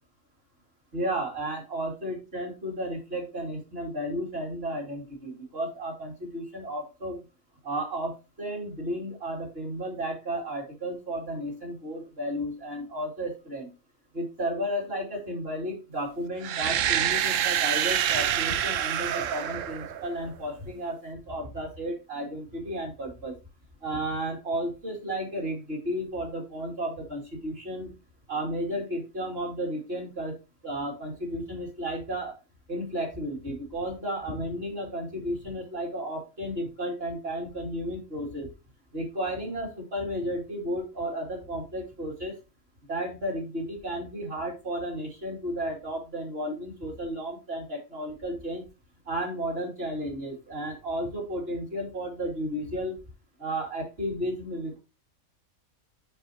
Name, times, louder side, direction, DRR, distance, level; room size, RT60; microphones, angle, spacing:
voice 1, 0.9-7.2 7.6-13.7 14.1-23.3 23.8-27.9 28.3-30.3 30.6-32.3 32.7-38.5 38.9-42.4 42.9-48.7 49.0-53.0 53.4-54.8, right 1 dB, 45° right, 0 dB, 2.8 m, -33 dB
sound 1, 16.4-20.3, right 11 dB, 70° right, 0.9 m, -27 dB
7.4 x 6.1 x 2.8 m, 0.29 s
omnidirectional pair, 1.5 m